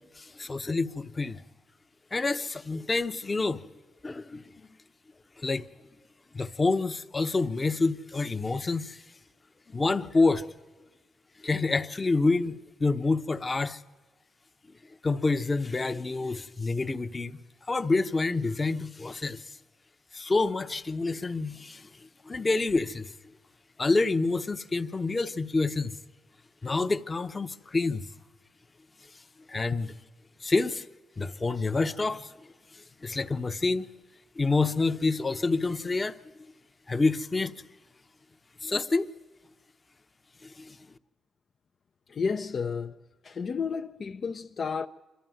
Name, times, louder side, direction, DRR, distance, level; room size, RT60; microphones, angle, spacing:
voice 1, 0.2-1.4 2.1-3.6 4.0-4.7 5.4-5.7 6.3-9.0 9.7-10.5 11.4-13.8 15.0-17.4 17.7-19.6 20.1-23.1 23.8-25.9 26.6-28.1 29.1-29.2 29.5-29.9 30.4-30.9 31.2-33.9 34.4-36.2 36.9-37.7 38.6-39.1 40.4-40.8, left 3 dB, 25° left, 0.9 m, -28 dB
voice 2, 42.1-43.0 43.2-44.9, left 5 dB, 45° left, 0.6 m, -31 dB
26.5 x 12.5 x 9.2 m
cardioid pair, 90°, 0 cm